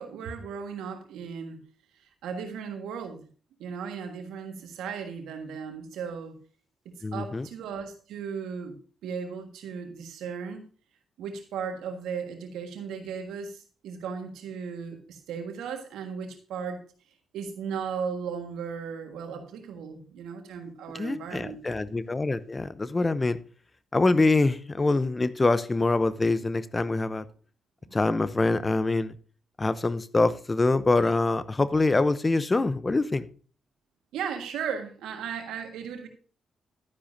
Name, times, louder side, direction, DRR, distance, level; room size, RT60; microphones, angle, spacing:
voice 1, 0.0-1.6 2.0-3.3 3.6-6.4 7.1-8.8 9.0-10.7 11.2-16.8 17.3-21.6 27.8-28.0 34.1-36.1, right 6 dB, 85° right, 5 dB, 1.6 m, -36 dB
voice 2, 7.0-7.5 20.9-23.4 23.9-27.2 27.9-29.1 29.6-33.3, left 3 dB, 30° left, 15 dB, 0.7 m, -25 dB
12.0 x 9.7 x 2.7 m, 0.39 s
supercardioid pair, 50°, 0 cm